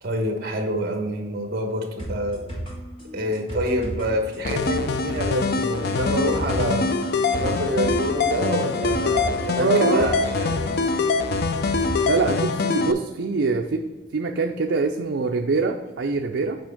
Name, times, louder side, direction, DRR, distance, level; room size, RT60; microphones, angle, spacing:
voice 1, 0.0-2.5 3.1-6.9 7.3-10.8, equal, 50° right, 1.2 m, -27 dB
sound 1, 2.0-12.0 12.3-12.4, right 1 dB, 30° left, 1.7 m, -34 dB
sound 2, 4.4-12.9, left 4 dB, 50° left, 0.4 m, -24 dB
voice 2, 9.6-10.1 12.1-13.8 14.1-16.6, right 4 dB, 70° right, 0.5 m, -24 dB
7.6 x 5.2 x 3.6 m
head